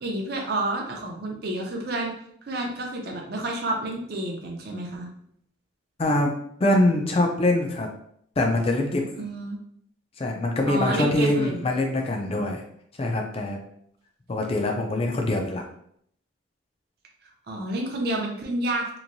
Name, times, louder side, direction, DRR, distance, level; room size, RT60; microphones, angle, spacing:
voice 1, 0.0-2.1 2.5-5.1 9.2-9.6 10.7-11.7 17.5-19.0, right 1 dB, 50° right, 1 dB, 0.5 m, -29 dB
voice 2, 6.0-6.3 6.6-7.9 8.4-9.0 10.2-12.6 13.0-13.6 14.3-15.6, left 1 dB, 30° left, 2 dB, 0.4 m, -23 dB
3.0 x 2.6 x 2.6 m, 0.68 s
head